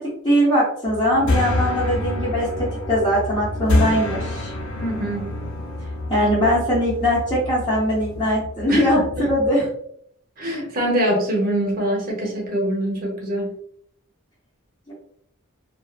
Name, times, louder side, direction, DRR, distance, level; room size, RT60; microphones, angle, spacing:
voice 1, 0.2-2.5 2.9-4.5 6.1-9.7 14.9-15.0, equal, 20° left, -10 dB, 0.6 m, -20 dB
sound 1, 0.8-9.5, left 1 dB, 75° left, 0.6 m, -27 dB
voice 2, 4.8-5.3 8.7-9.3 10.4-13.5, right 1 dB, 40° right, 0 dB, 0.7 m, -24 dB
2.4 x 2.3 x 2.4 m, 0.68 s
head